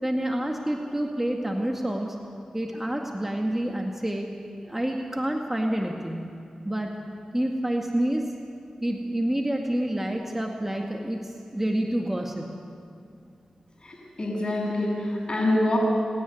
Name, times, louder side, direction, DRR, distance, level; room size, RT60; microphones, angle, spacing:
voice 1, 0.0-2.2 2.5-4.3 4.6-6.3 6.6-7.0 7.3-8.2 8.8-12.6, right 1 dB, 15° right, 1 dB, 2.0 m, -28 dB
voice 2, 13.8-15.8, left 1 dB, 45° left, -8 dB, 7.3 m, -26 dB
30.0 x 10.5 x 9.7 m, 2.4 s
cardioid pair, 45°, 2 cm